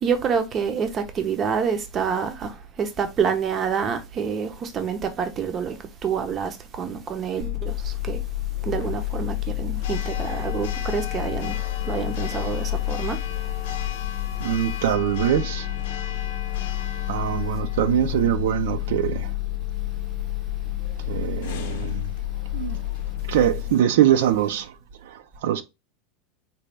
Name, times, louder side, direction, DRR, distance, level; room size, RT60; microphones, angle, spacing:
voice 1, 0.0-5.8 6.0-8.2 8.6-11.6 11.9-13.2, right 6 dB, 25° right, 0.5 m, -27 dB
Church bell, 7.4-23.7, left 15 dB, 70° left, 0.6 m, -29 dB
voice 2, 14.4-15.7 17.1-19.3 21.1-22.2 22.5-22.8 23.3-24.7 25.0-25.6, right 11 dB, 80° right, 0.4 m, -23 dB
4.0 x 2.2 x 3.2 m
supercardioid pair, 165°, 0 cm